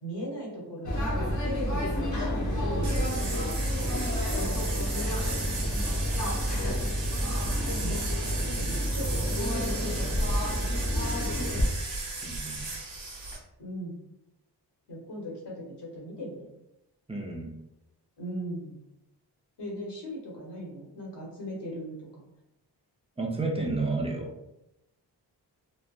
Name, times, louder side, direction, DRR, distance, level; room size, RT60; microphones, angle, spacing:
voice 1, 0.0-5.6 7.7-8.1 8.5-10.3 10.6-10.7 13.6-14.0 14.9-16.5 18.2-18.8 19.6-22.2, equal, 70° left, -2 dB, 1.2 m, -39 dB
sound 1, 0.8-11.7, equal, 45° left, 0.9 m, -29 dB
sound 2, 2.8-13.4, right 3 dB, 75° right, 1.2 m, -37 dB
voice 2, 12.2-12.6 17.1-17.5 23.2-24.3, right 3 dB, 15° right, -1 dB, 0.7 m, -31 dB
3.2 x 2.1 x 2.5 m, 0.86 s
cardioid pair, 50°, 43 cm